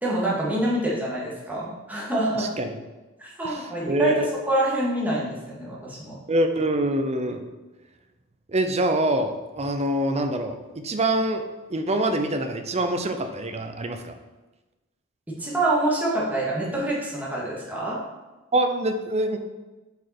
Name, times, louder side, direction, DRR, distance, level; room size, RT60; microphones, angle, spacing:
voice 1, 0.0-2.5 3.2-4.1 4.5-6.2 15.4-18.0, right 1 dB, 10° right, -6 dB, 2.1 m, -26 dB
voice 2, 2.4-2.8 3.4-3.6 3.9-4.3 6.3-7.4 8.5-11.4 11.7-14.1 18.5-19.4, right 1 dB, 30° right, 7 dB, 0.7 m, -25 dB
7.7 x 5.3 x 4.5 m, 1.2 s
head